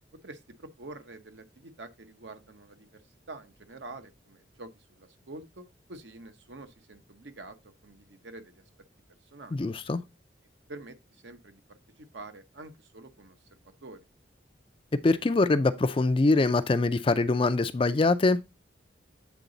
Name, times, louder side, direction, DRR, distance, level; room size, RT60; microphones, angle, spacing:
voice 1, 0.2-3.0 3.3-7.6 7.8-8.6 9.3-9.6 10.7-13.4 13.8-14.1, right 2 dB, 70° right, 1.0 m, -47 dB
voice 2, 9.5-10.0 15.0-18.4, left 3 dB, 30° left, 0.4 m, -23 dB
8.2 x 3.9 x 3.9 m
head